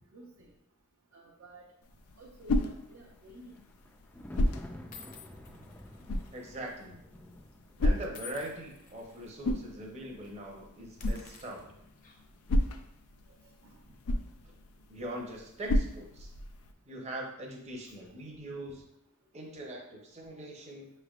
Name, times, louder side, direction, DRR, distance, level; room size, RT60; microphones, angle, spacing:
voice 1, 0.1-0.5 1.1-1.6 2.2-3.6 5.5-5.6 13.6-13.8, right 1 dB, 65° right, -3 dB, 0.6 m, -52 dB
sound 1, 1.8-16.7, left 1 dB, 90° left, 0.4 m, -35 dB
Thunder, 2.4-16.9 17.2-17.5, left 1 dB, 5° left, 0.3 m, -54 dB
sound 2, 3.2-3.5 4.3-4.4 4.9-6.9 7.1-7.3 8.1-9.3 9.7-9.9 10.2-10.4 10.9-12.4, left 7 dB, 40° left, 0.7 m, -53 dB
voice 2, 6.3-7.0 7.8-11.6 14.4-14.6 14.9-16.3 16.9-18.8 19.3-20.9, right 1 dB, 30° right, 0 dB, 0.7 m, -42 dB
5.6 x 3.3 x 2.4 m, 0.79 s
head